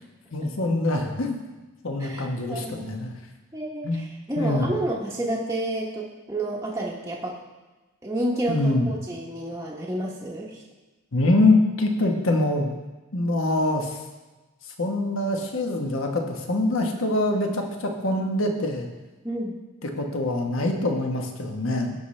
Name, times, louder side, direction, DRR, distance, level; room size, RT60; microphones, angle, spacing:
voice 1, 0.3-1.4 1.8-3.1 3.8-4.0 4.4-4.7 8.5-8.9 11.1-12.7 13.1-14.0 14.8-18.9 20.0-21.9, left 2 dB, 65° left, 3 dB, 1.2 m, -24 dB
voice 2, 2.0-3.1 3.5-7.4 8.0-10.6 19.2-19.5, right 1 dB, 15° right, -4 dB, 0.9 m, -30 dB
16.0 x 5.7 x 3.2 m, 1.2 s
head